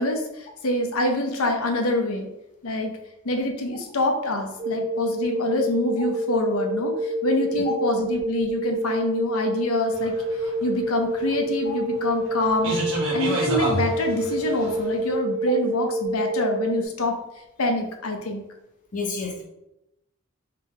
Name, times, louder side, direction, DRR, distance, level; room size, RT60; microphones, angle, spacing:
voice 1, 0.0-2.3 2.6-2.9 3.2-10.1 10.6-12.8 13.1-17.1 17.6-18.4, left 1 dB, 70° left, 3 dB, 0.7 m, -26 dB
sound 1, 4.6-16.9, right 1 dB, 25° right, 0.7 m, -27 dB
sound 2, 9.9-15.0, right 1 dB, 65° right, 1.2 m, -30 dB
voice 2, 18.9-19.4, left 4 dB, 35° left, -1 dB, 0.8 m, -30 dB
3.3 x 2.9 x 3.6 m, 0.89 s
head